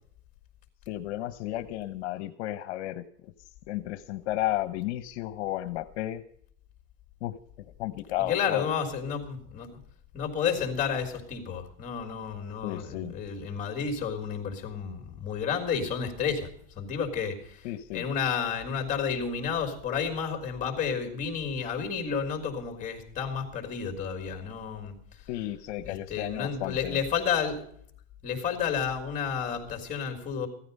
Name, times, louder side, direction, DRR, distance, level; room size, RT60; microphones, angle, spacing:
voice 1, 0.9-6.2 7.2-7.4 7.8-8.7 12.6-13.1 17.6-18.1 25.3-27.0, left 14 dB, 65° left, 10 dB, 1.0 m, -33 dB
voice 2, 8.2-9.7 10.1-16.5 16.8-17.7 17.9-24.9 25.8-27.6 28.2-30.5, left 7 dB, 20° left, 5 dB, 3.5 m, -31 dB
16.0 x 13.5 x 5.4 m, 0.63 s
supercardioid pair, 145°, 36 cm